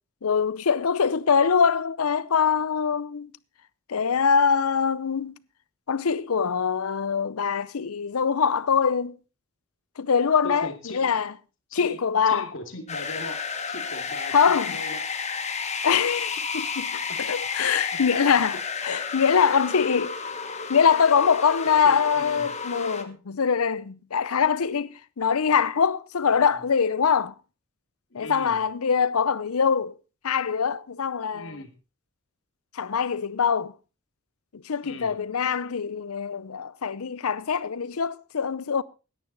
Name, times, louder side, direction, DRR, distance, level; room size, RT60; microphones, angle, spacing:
voice 1, 0.2-3.3 3.9-5.4 5.9-9.2 10.0-11.3 11.7-12.5 14.3-14.8 15.8-18.6 18.8-20.2 20.4-27.3 28.1-30.0 30.2-31.6 32.7-33.7 34.5-38.8, left 6 dB, 85° left, 0.6 m, -23 dB
voice 2, 10.4-11.1 11.7-12.0 12.3-15.0 17.1-17.2 17.9-18.0 21.6-22.5 26.3-26.6 28.1-28.6 31.3-31.7 34.8-35.2, left 1 dB, 60° left, 2.3 m, -39 dB
sound 1, 12.9-23.0, left 5 dB, 30° left, 1.2 m, -32 dB
16.5 x 10.5 x 4.0 m
head